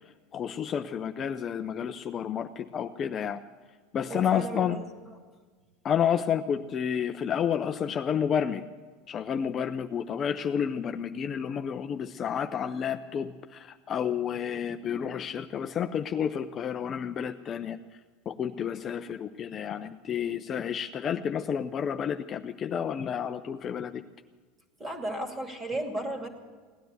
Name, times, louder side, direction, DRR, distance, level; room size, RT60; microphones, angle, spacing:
voice 1, 0.3-3.4 3.9-4.8 5.8-8.6 9.1-17.8 18.3-24.0, left 8 dB, 30° left, 8 dB, 0.5 m, -30 dB
voice 2, 4.1-5.2 24.8-26.3, right 1 dB, 15° right, 4 dB, 2.3 m, -35 dB
17.5 x 10.0 x 8.1 m, 1.5 s
supercardioid pair, 135°, 0 cm